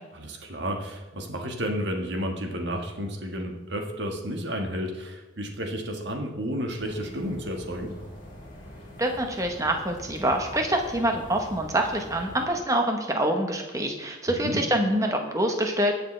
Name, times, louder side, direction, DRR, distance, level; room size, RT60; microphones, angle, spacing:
voice 1, 0.1-7.9 14.3-14.6, equal, 60° right, 3 dB, 1.5 m, -32 dB
sound 1, 6.8-12.4, equal, 40° left, 3.6 m, -44 dB
voice 2, 9.0-15.9, right 1 dB, 15° right, 3 dB, 1.0 m, -25 dB
19.5 x 6.8 x 3.3 m, 1.2 s
head